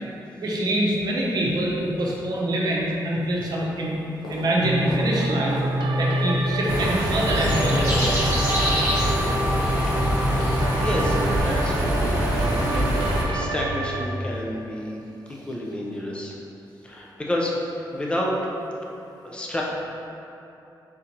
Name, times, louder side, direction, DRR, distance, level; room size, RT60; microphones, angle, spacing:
voice 1, 0.4-4.0 4.3-5.6 6.0-8.2, right 1 dB, 55° right, -3 dB, 0.7 m, -25 dB
sound 1, 2.9-3.1 3.6-12.8 13.3-13.7 13.9-14.1 14.5-14.7 15.1-15.2 15.8-15.9, left 1 dB, 70° left, 0.7 m, -38 dB
sound 2, 4.6-14.1, right 1 dB, 85° right, 0.3 m, -27 dB
sound 3, 6.7-13.2, equal, 35° right, 1.3 m, -24 dB
voice 2, 10.8-15.0 15.3-16.3 16.8-17.5 17.9-18.3 19.2-19.6, left 1 dB, 15° left, -3 dB, 0.5 m, -30 dB
3.7 x 2.8 x 4.4 m, 2.8 s
wide cardioid pair, 170°, 8 cm